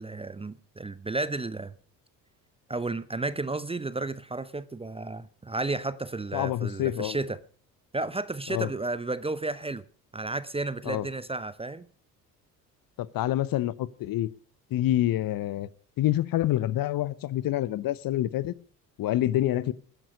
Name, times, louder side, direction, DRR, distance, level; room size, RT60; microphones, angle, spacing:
voice 1, 0.0-1.7 2.7-7.4 7.9-9.8 10.1-11.9, right 2 dB, 10° right, 0.7 m, -32 dB
voice 2, 6.3-7.2 8.5-8.7 10.8-11.1 13.0-14.3 14.7-15.7 16.0-18.5 19.0-19.7, left 13 dB, 45° left, 0.9 m, -27 dB
15.0 x 10.0 x 6.4 m
figure-of-eight pair, 55°, 49 cm